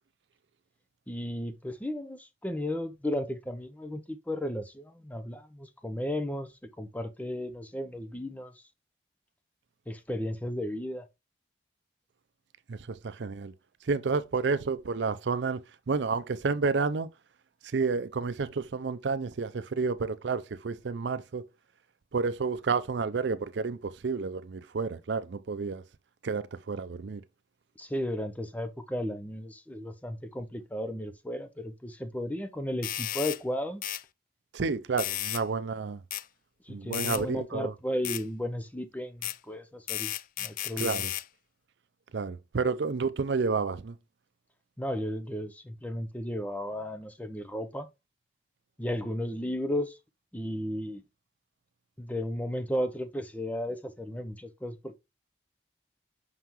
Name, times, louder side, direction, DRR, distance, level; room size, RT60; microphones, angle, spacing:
voice 1, 1.1-6.5 6.8-8.6 9.9-11.1 27.8-33.8 36.7-40.1 40.4-41.0 44.8-47.9 48.8-50.0 50.3-51.0 52.0-54.9, equal, 10° left, 0.6 m, -34 dB
voice 2, 12.7-13.5 13.9-15.6 15.9-17.1 17.7-21.4 22.1-25.8 26.2-27.2 34.5-36.0 36.7-37.7 40.8-41.1 42.1-44.0, right 4 dB, 75° right, 0.5 m, -30 dB
Annoying doorbell, 32.8-33.4 33.8-34.0 35.0-35.4 36.1-36.2 36.9-37.2 38.0-38.2 39.2-39.4 39.9-41.3, left 14 dB, 50° left, 0.3 m, -33 dB
5.7 x 5.6 x 3.0 m
head